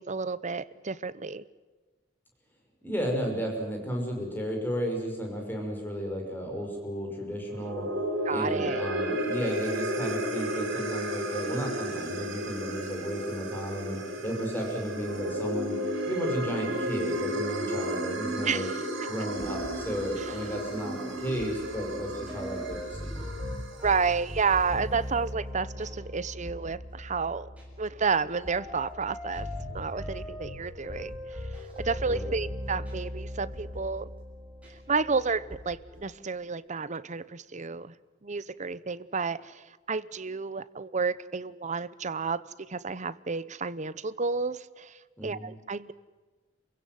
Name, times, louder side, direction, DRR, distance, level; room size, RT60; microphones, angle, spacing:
voice 1, 0.0-1.4 8.3-8.8 18.4-18.8 20.2-20.3 23.8-27.5 27.8-34.1 34.9-37.9 38.2-45.9, right 5 dB, 35° right, 16 dB, 0.8 m, -31 dB
voice 2, 2.8-7.9 8.3-15.8 16.1-18.7 19.1-23.2 32.0-32.3 45.2-45.5, equal, 10° left, 1 dB, 5.9 m, -33 dB
sound 1, 7.4-23.9, right 1 dB, 60° right, 6.9 m, -33 dB
sound 2, 19.4-36.1, left 1 dB, 5° right, 7.5 m, -40 dB
28.5 x 16.5 x 9.4 m, 1.3 s
head